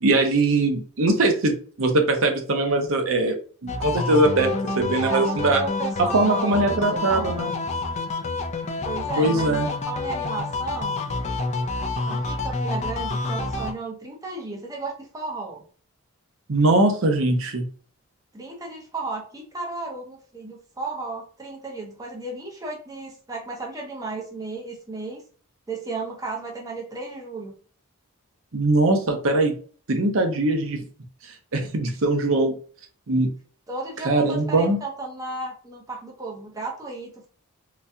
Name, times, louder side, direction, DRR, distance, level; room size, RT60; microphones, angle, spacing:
voice 1, 0.0-1.5 1.8-3.3 3.6-5.6 6.0-7.5 9.2-9.7 16.5-17.7 28.5-29.5 29.9-30.8 31.5-32.5 33.1-33.3 34.0-34.8, right 2 dB, 65° right, 5 dB, 0.7 m, -21 dB
sound 1, 3.7-13.7, left 3 dB, 30° left, 0.4 m, -28 dB
voice 2, 5.0-7.3 8.8-11.1 12.0-15.6 18.3-25.2 25.7-27.5 33.7-37.3, right 3 dB, 15° right, -1 dB, 0.7 m, -34 dB
3.9 x 2.2 x 2.6 m, 0.42 s
head